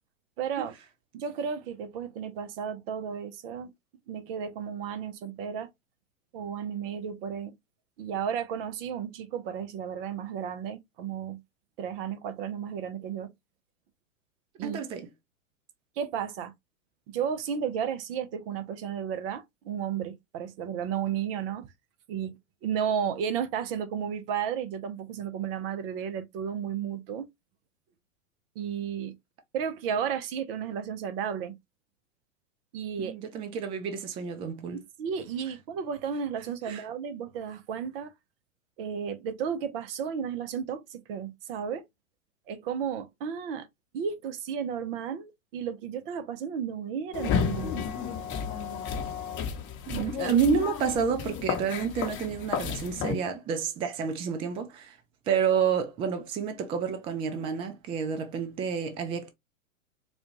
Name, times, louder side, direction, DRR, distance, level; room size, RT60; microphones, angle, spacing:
voice 1, 0.4-0.7 1.1-3.7 4.1-5.7 6.3-7.5 8.0-11.4 11.8-13.3 14.6-14.9 16.0-16.5 17.1-21.7 22.1-27.3 28.6-29.2 29.5-31.6 32.7-33.2 35.0-38.1 38.8-41.9 42.5-43.7 43.9-47.8, right 7 dB, 45° right, 0.7 m, -33 dB
voice 2, 14.6-15.1 33.0-34.8 36.6-36.8 49.9-55.0 55.3-59.3, right 6 dB, 15° right, 0.4 m, -29 dB
sound 1, 47.1-53.1, left 7 dB, 30° left, 0.9 m, -32 dB
4.2 x 2.3 x 2.9 m
hypercardioid pair, 105°, 40 cm